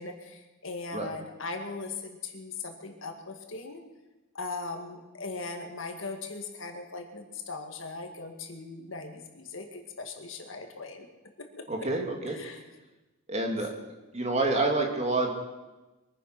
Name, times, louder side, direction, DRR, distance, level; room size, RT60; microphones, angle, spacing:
voice 1, 0.0-3.8 4.3-11.1 11.4-11.9 12.3-12.6, left 3 dB, 65° left, 5 dB, 2.0 m, -39 dB
voice 2, 11.7-12.4 13.3-13.7 14.1-15.3, right 2 dB, 30° right, 2 dB, 2.2 m, -27 dB
23.0 x 9.9 x 6.0 m, 1.1 s
head